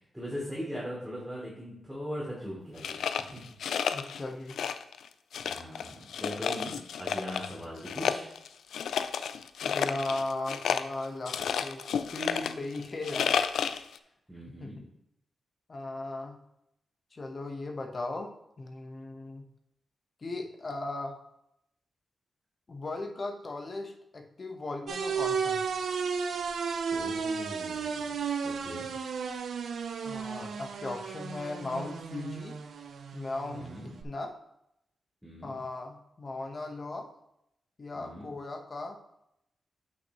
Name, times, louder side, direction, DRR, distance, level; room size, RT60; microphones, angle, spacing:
voice 1, 0.1-3.4 5.4-5.8 6.2-8.3 14.3-14.8 26.9-28.0 28.4-28.9 33.5-33.9 35.2-35.6 37.9-38.3, equal, 5° right, -6 dB, 3.1 m, -40 dB
sound 1, 2.8-4.2 4.5-5.0 5.3-7.6 7.9-14.0, left 7 dB, 85° left, 0.3 m, -31 dB
voice 2, 3.9-4.6 9.6-13.4 14.6-14.9 15.7-16.4 17.1-19.5 20.2-21.2 22.7-25.7 30.0-32.6 33.1-34.3 35.4-37.1 37.8-39.0, left 2 dB, 45° left, 4 dB, 1.2 m, -37 dB
sound 2, 24.9-34.0, right 6 dB, 75° right, 0.7 m, -34 dB
8.3 x 6.0 x 3.1 m, 0.79 s
cardioid pair, 60°, 0 cm